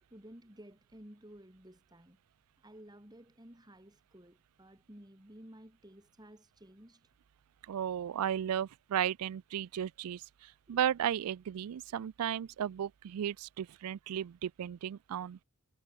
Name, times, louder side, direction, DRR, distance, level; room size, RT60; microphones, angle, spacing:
voice 1, 0.0-2.2 2.6-7.1 10.7-10.8, right 1 dB, 20° right, 3.0 m, -54 dB
voice 2, 7.7-15.4, right 9 dB, 85° right, 0.4 m, -35 dB
head